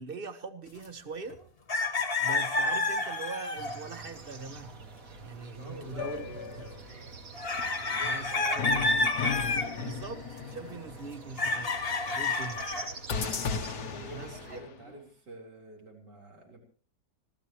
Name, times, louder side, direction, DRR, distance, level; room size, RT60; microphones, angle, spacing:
voice 1, 0.0-1.4 1.9-4.8 5.2-6.7 8.0-9.1 9.8-11.7 12.0-12.6 14.1-15.0, right 3 dB, 35° right, 9 dB, 1.5 m, -42 dB
sound 1, 1.3-1.4 1.7-3.9 7.4-9.7 11.4-12.9, left 3 dB, 35° left, 1.7 m, -29 dB
sound 2, 3.6-14.6, right 4 dB, 50° right, 2.2 m, -46 dB
voice 2, 5.6-7.1 7.7-9.0 13.9-16.6, right 1 dB, 75° right, 1 dB, 4.7 m, -49 dB
sound 3, 6.0-7.0 8.6-11.2 13.1-14.8, left 6 dB, 70° left, 1.8 m, -36 dB
25.5 x 17.5 x 3.1 m, 0.38 s
omnidirectional pair, 1.9 m